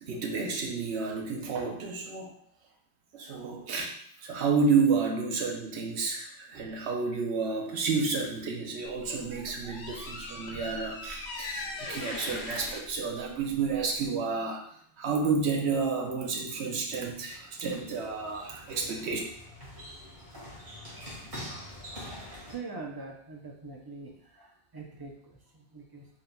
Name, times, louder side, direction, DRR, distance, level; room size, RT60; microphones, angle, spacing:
voice 1, 0.0-2.3 3.1-4.0 4.2-14.7 15.0-19.2, right 4 dB, 85° right, 1 dB, 1.0 m, -30 dB
sound 1, 8.8-14.0, left 3 dB, 90° left, 1.0 m, -40 dB
sound 2, 16.9-22.5, equal, 60° right, 1.8 m, -45 dB
voice 2, 22.2-26.1, right 3 dB, 30° right, -1 dB, 0.4 m, -44 dB
3.9 x 3.8 x 2.2 m, 0.64 s
omnidirectional pair, 1.1 m